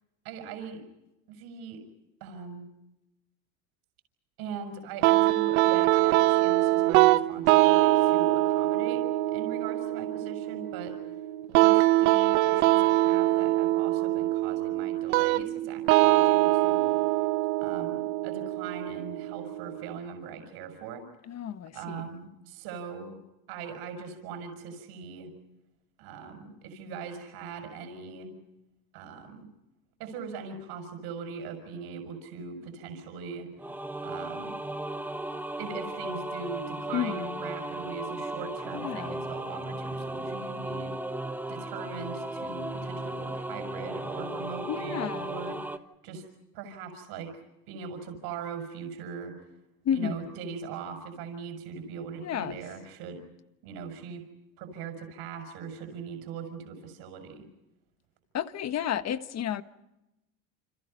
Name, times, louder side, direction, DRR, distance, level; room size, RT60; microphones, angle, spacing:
voice 1, 0.2-0.8 1.3-1.8 2.2-2.7 4.4-11.1 11.5-17.3 17.6-21.0 21.7-23.2 23.5-25.3 26.0-28.3 28.9-29.5 30.0-33.7 34.0-34.5 35.6-40.9 41.5-45.6 46.0-46.2 46.5-47.4 47.7-49.3 49.9-53.2 53.6-54.2 54.6-57.5, right 5 dB, 65° right, 5.8 m, -40 dB
sound 1, 5.0-20.0, right 17 dB, 85° right, 1.3 m, -24 dB
voice 2, 21.3-22.0 36.9-37.4 38.7-39.2 44.7-45.3 49.8-50.3 52.2-52.6 58.3-59.6, left 9 dB, 40° left, 1.5 m, -31 dB
sound 2, 33.6-45.8, right 1 dB, 5° right, 1.3 m, -36 dB
29.5 x 27.0 x 5.4 m
supercardioid pair, 120°, 41 cm